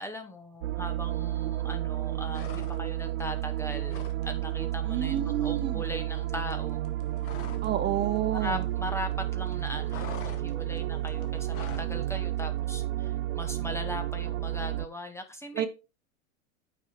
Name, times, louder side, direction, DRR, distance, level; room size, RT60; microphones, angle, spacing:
voice 1, 0.0-5.1 5.4-6.8 8.3-15.7, left 1 dB, 5° left, 1.0 m, -39 dB
sound 1, 0.6-14.9, right 14 dB, 80° right, 0.5 m, -31 dB
sound 2, 2.3-3.1 3.4-4.2 4.5-4.7 5.0-7.8 8.0-9.1 9.4-12.0, left 7 dB, 35° left, 1.7 m, -45 dB
voice 2, 4.9-5.8 7.6-8.6 15.5-15.7, right 11 dB, 25° right, 1.1 m, -29 dB
8.8 x 4.8 x 4.7 m
hypercardioid pair, 120°, 39 cm